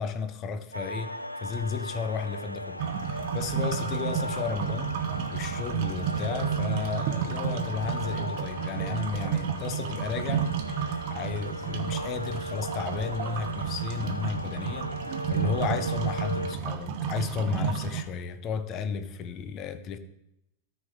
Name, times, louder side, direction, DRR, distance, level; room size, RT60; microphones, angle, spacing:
voice 1, 0.0-2.8 3.1-5.0 5.3-20.0, left 6 dB, 35° left, 0.8 m, -33 dB
sound 1, 0.7-16.5, equal, 85° left, 0.4 m, -38 dB
sound 2, 2.8-18.0, right 8 dB, 50° right, 0.8 m, -32 dB
13.0 x 4.5 x 4.8 m
figure-of-eight pair, 90°, 0 cm